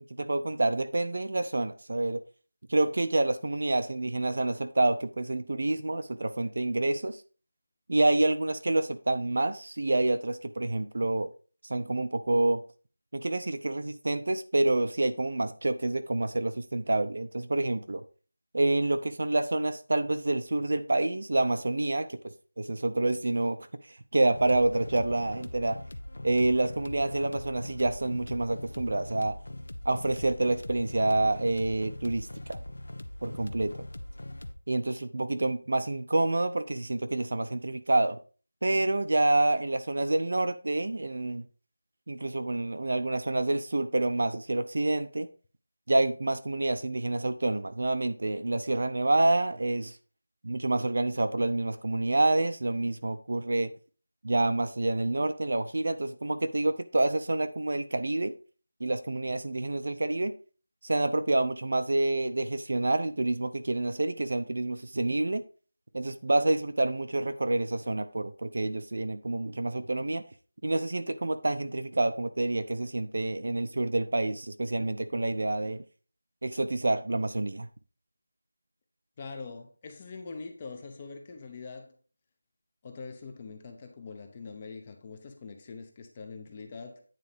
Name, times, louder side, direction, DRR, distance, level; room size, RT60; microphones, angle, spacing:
voice 1, 0.2-2.2 2.7-7.2 7.9-11.3 11.7-12.6 13.1-18.0 18.5-22.2 22.6-23.6 24.1-25.8 26.2-29.4 29.8-32.6 33.2-33.7 34.7-38.2 38.6-41.5 42.1-45.3 45.9-50.0 50.4-53.7 54.2-58.3 58.8-60.3 60.8-65.4 65.9-70.2 70.6-75.8 76.4-77.7, right 2 dB, 45° right, 0.6 m, -28 dB
sound 1, 24.3-34.5, left 1 dB, 70° left, 1.0 m, -41 dB
voice 2, 79.2-82.0 82.8-87.0, left 4 dB, 15° left, 0.6 m, -43 dB
9.2 x 4.1 x 5.0 m
figure-of-eight pair, 180°, 0 cm